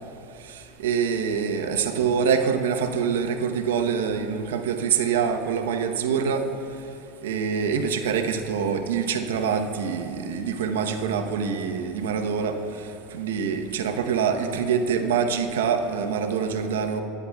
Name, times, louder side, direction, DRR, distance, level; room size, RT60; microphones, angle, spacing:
voice 1, 0.5-6.4 7.2-12.5 13.1-17.0, right 6 dB, 90° right, 5 dB, 0.9 m, -25 dB
28.0 x 9.5 x 2.3 m, 2.6 s
supercardioid pair, 110°, 0 cm